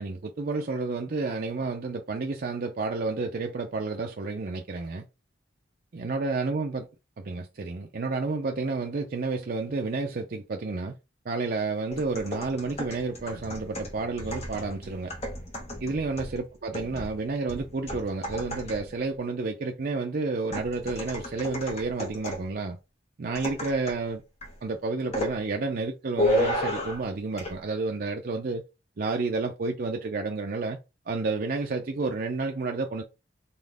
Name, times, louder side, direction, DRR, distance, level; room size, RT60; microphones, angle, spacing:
voice 1, 0.0-5.0 5.9-6.9 7.2-10.9 11.3-15.1 15.8-22.8 23.2-24.2 24.6-28.6 29.0-30.8 31.1-33.0, right 3 dB, 50° right, 0.5 m, -30 dB
sound 1, 11.9-19.0 20.5-22.5 23.3-24.1 24.4-24.6 25.1-25.4 26.2-27.1 27.4-27.6, left 1 dB, 35° left, 1.4 m, -33 dB
4.2 x 3.6 x 3.4 m
head